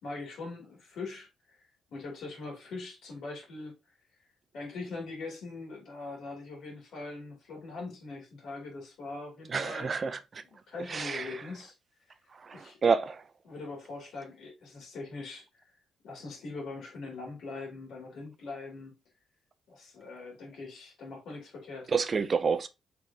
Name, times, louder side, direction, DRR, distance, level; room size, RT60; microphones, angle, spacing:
voice 1, 0.0-1.6 1.9-3.8 4.5-9.9 10.4-11.7 12.5-12.8 13.4-15.6 16.0-19.0 19.7-21.9, left 3 dB, 70° left, 2.7 m, -42 dB
voice 2, 9.5-10.4 10.9-11.4 12.4-13.2 21.9-22.7, right 5 dB, 40° right, 0.5 m, -29 dB
5.0 x 3.8 x 2.8 m
cardioid pair, 90°, 0 cm